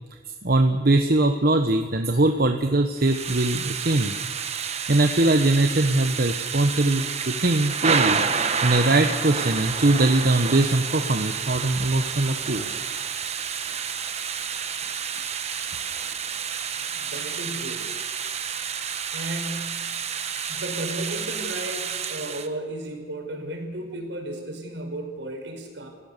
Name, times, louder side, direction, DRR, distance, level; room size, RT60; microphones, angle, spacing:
voice 1, 0.4-4.1 4.6-8.2 8.6-12.7, right 2 dB, 55° right, 5 dB, 1.2 m, -21 dB
Thunder / Rain, 3.0-22.5, right 6 dB, 35° right, 1.2 m, -29 dB
voice 2, 16.9-17.9 19.1-19.9 20.5-25.9, right 1 dB, 75° right, 3 dB, 5.3 m, -34 dB
30.0 x 16.5 x 6.8 m, 1.5 s
head